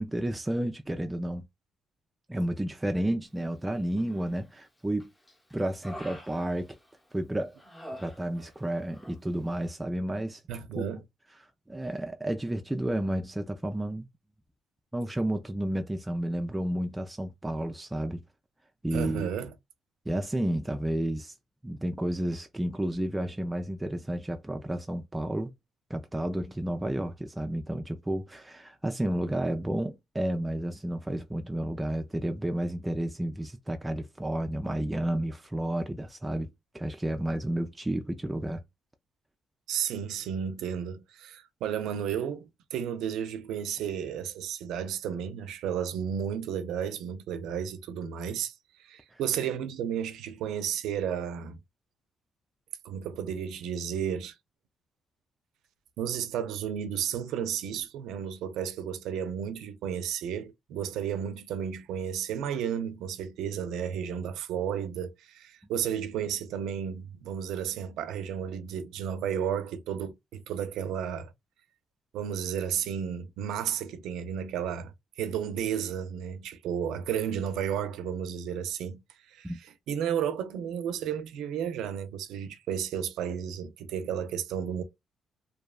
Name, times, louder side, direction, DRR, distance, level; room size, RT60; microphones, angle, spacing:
voice 1, 0.0-1.5 2.3-5.1 5.5-6.8 7.1-7.6 8.0-10.4 10.8-10.9 11.7-14.1 14.9-18.2 18.8-19.3 20.1-21.3 21.6-25.5 25.9-36.5 36.7-38.6 49.1-49.2 79.4-79.6, right 1 dB, 10° right, 0.3 m, -31 dB
Human voice, 4.0-4.6 5.0-7.1 7.6-8.6 8.9-9.2, equal, 10° left, 0.8 m, -47 dB
voice 2, 10.5-11.0 18.9-19.5 39.7-48.5 48.8-51.6 52.8-54.4 56.0-71.3 72.1-79.0 79.3-84.8, right 8 dB, 85° right, 0.4 m, -33 dB
2.6 x 2.1 x 2.3 m
cardioid pair, 90°, 0 cm